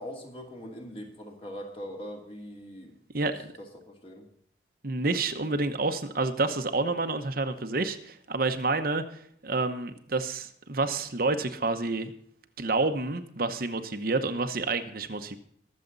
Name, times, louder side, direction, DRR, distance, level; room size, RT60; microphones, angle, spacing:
voice 1, 0.0-2.9 3.2-4.3, equal, 30° left, 1 dB, 2.7 m, -42 dB
voice 2, 3.1-3.5 4.8-12.1 12.6-15.4, right 3 dB, 50° right, 7 dB, 1.0 m, -29 dB
22.0 x 7.5 x 4.0 m, 0.66 s
head